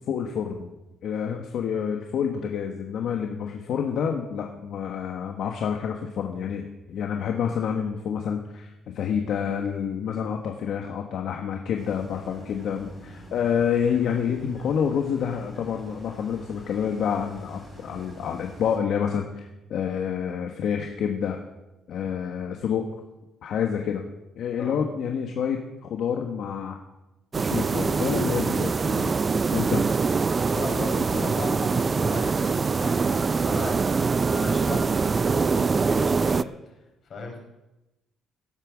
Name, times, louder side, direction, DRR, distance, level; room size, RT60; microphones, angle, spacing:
voice 1, 0.1-0.7 1.0-21.4 21.9-22.9 23.4-24.0 24.4-26.8 27.4-29.1 29.5-29.8, left 7 dB, 65° left, 3 dB, 1.3 m, -28 dB
sound 1, 11.8-18.8, right 1 dB, 5° left, 5.9 m, -46 dB
sound 2, 27.3-36.4, right 4 dB, 30° right, 0.4 m, -24 dB
voice 2, 30.5-36.7 37.1-37.4, left 3 dB, 45° left, 1 dB, 4.6 m, -36 dB
17.0 x 9.0 x 6.2 m, 1.0 s
cardioid pair, 130°, 0 cm